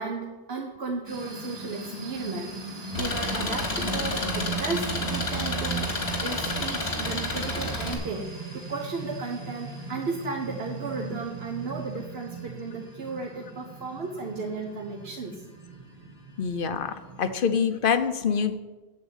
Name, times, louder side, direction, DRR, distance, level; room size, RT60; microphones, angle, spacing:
voice 1, 0.0-5.9 6.2-15.4, right 3 dB, 75° right, 1 dB, 1.2 m, -34 dB
sound 1, 1.1-17.4, right 4 dB, 35° right, 1.8 m, -38 dB
Engine, 2.9-7.9, left 2 dB, 75° left, 2.3 m, -30 dB
voice 2, 16.4-18.6, left 6 dB, 60° left, 9 dB, 0.9 m, -26 dB
8.4 x 7.3 x 8.1 m, 1.2 s
omnidirectional pair, 1.1 m